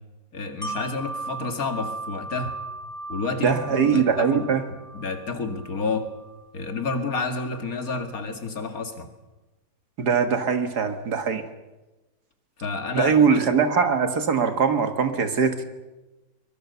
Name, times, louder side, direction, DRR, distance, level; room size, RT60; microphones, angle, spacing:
voice 1, 0.3-2.6 3.1-4.5 4.9-6.1 6.5-9.1 12.6-13.4, left 3 dB, 50° left, 6 dB, 2.7 m, -30 dB
Wind chime, 0.6-6.4 6.8-6.9, right 2 dB, 10° left, 4.3 m, -37 dB
voice 2, 3.4-4.6 10.0-11.4 13.0-15.6, right 6 dB, 60° right, 8 dB, 2.1 m, -21 dB
23.5 x 21.5 x 6.9 m, 1.1 s
omnidirectional pair, 2.0 m